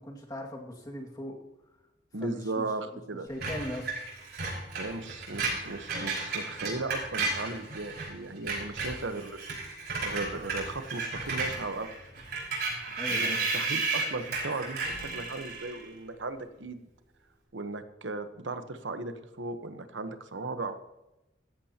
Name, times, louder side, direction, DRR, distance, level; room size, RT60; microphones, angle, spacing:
voice 1, 0.0-1.4 2.2-2.7 3.3-3.9 13.0-13.5, equal, 20° left, 0 dB, 2.1 m, -39 dB
voice 2, 2.1-3.3 4.8-9.4 10.0-11.9 13.1-16.9 17.5-20.8, right 3 dB, 80° right, 9 dB, 1.1 m, -36 dB
Screech, 3.4-8.1 8.4-15.8, right 3 dB, 60° right, 5.5 m, -33 dB
15.5 x 14.0 x 2.9 m, 0.98 s
head